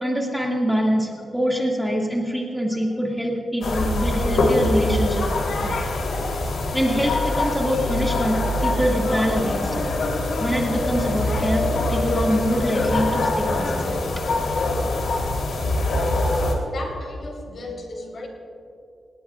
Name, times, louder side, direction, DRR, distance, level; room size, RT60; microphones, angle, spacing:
voice 1, 0.0-5.8 6.7-9.9 10.4-14.1, equal, ahead, -2 dB, 2.3 m, -24 dB
sound 1, 3.6-16.5, left 2 dB, 85° left, 3.4 m, -23 dB
voice 2, 16.7-18.3, left 2 dB, 60° left, 1 dB, 4.3 m, -35 dB
30.0 x 19.0 x 2.5 m, 2.5 s
wide cardioid pair, 105°, 0 cm